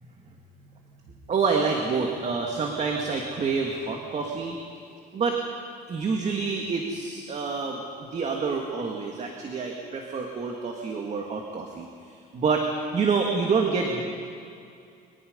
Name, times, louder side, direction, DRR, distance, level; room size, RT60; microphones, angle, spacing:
voice 1, 1.3-4.6 5.1-5.4 5.9-11.9 12.3-12.7 12.9-14.0, right 5 dB, 40° right, 1 dB, 2.2 m, -27 dB
23.5 x 21.5 x 5.4 m, 2.4 s
cardioid pair, 110°, 17 cm